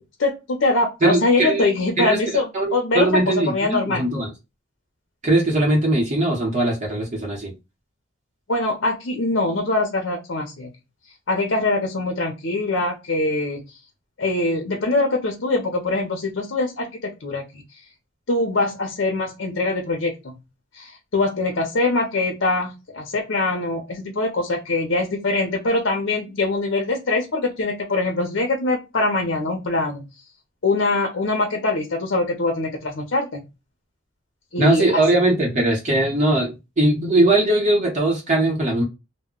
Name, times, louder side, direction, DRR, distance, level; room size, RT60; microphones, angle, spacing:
voice 1, 0.2-4.1 8.5-10.7 11.3-13.6 14.2-17.6 18.3-20.4 20.7-30.0 30.6-33.4 34.5-35.0, left 2 dB, 65° left, 2 dB, 0.6 m, -23 dB
voice 2, 1.0-1.7 2.0-4.3 5.2-7.5 34.6-38.8, right 2 dB, 35° right, -2 dB, 0.8 m, -20 dB
2.1 x 2.1 x 3.6 m, 0.25 s
head